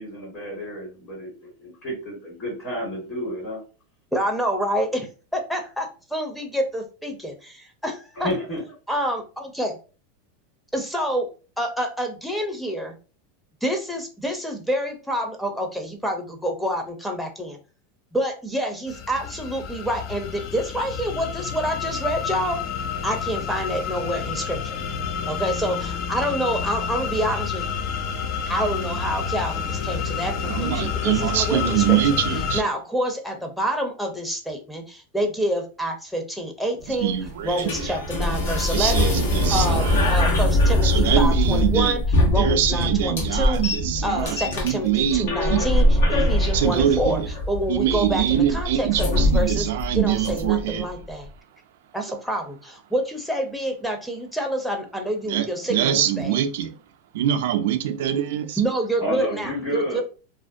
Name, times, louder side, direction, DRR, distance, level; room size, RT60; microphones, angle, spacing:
voice 1, 0.0-3.6 8.1-8.6 59.0-60.0, equal, 35° left, 1.5 m, -30 dB
voice 2, 4.1-5.1 5.3-8.3 8.9-9.8 10.7-11.3 11.6-12.9 13.6-17.6 18.1-22.6 23.0-24.8 25.3-27.8 28.5-32.0 32.5-37.2 37.4-39.1 39.5-42.0 42.3-43.6 44.0-47.2 47.5-49.7 49.9-51.3 51.9-56.4 58.6-60.0, equal, ahead, 0.6 m, -27 dB
sound 1, 18.9-32.6, left 6 dB, 55° left, 0.3 m, -29 dB
voice 3, 30.4-32.6 36.9-38.0 38.7-40.0 40.8-42.0 42.3-45.7 46.5-47.3 47.7-50.9 52.1-52.2 55.3-56.8 57.1-58.6, right 10 dB, 70° right, 0.3 m, -24 dB
sound 2, 36.8-50.8, left 1 dB, 75° left, 0.9 m, -22 dB
2.5 x 2.1 x 2.5 m
hypercardioid pair, 115°, 0 cm